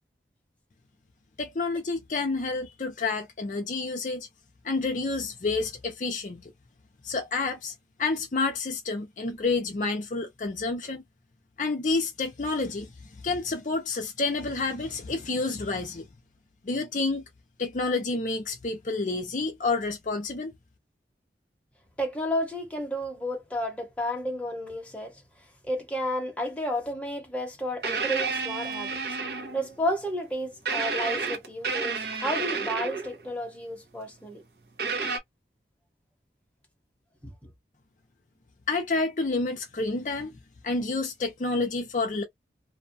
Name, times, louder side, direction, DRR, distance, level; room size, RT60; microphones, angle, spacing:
voice 1, 1.4-4.3 4.6-6.5 7.0-7.7 8.0-11.0 11.6-16.0 16.6-17.2 17.6-20.5 38.7-42.2, left 3 dB, 45° left, 0.5 m, -29 dB
voice 2, 22.0-25.2 25.6-29.0 29.3-34.4 37.2-37.5, equal, 5° left, 0.9 m, -32 dB
sound 1, 27.8-29.8 30.7-33.3 34.8-35.2, right 4 dB, 65° right, 0.8 m, -30 dB
2.6 x 2.2 x 2.6 m
head